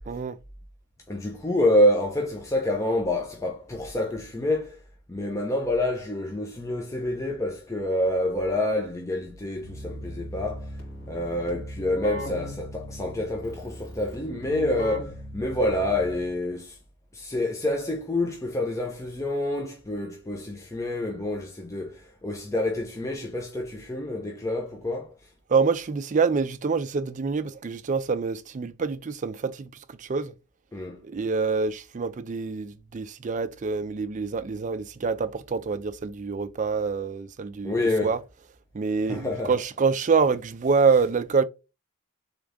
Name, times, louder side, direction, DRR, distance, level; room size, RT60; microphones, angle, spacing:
voice 1, 0.1-0.4 25.5-30.3 31.0-37.8 38.0-38.2 38.7-41.4, right 5 dB, 35° right, 0.3 m, -26 dB
voice 2, 1.1-4.8 5.1-10.7 11.1-16.8 17.1-25.1 30.7-31.0 37.6-38.1 39.1-39.5, left 1 dB, 15° left, 0.5 m, -27 dB
Keyboard (musical), 9.6-16.5, equal, 45° left, 2.6 m, -38 dB
3.5 x 3.5 x 3.5 m
head